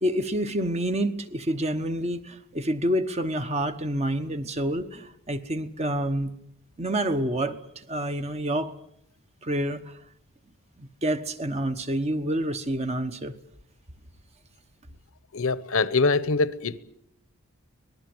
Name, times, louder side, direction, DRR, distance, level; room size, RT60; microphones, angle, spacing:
voice 1, 0.0-6.3 6.8-8.7 9.4-9.9 10.8-13.3, right 1 dB, 30° right, 1.1 m, -28 dB
voice 2, 15.3-16.8, left 3 dB, 65° left, 0.9 m, -24 dB
24.5 x 19.5 x 7.9 m
head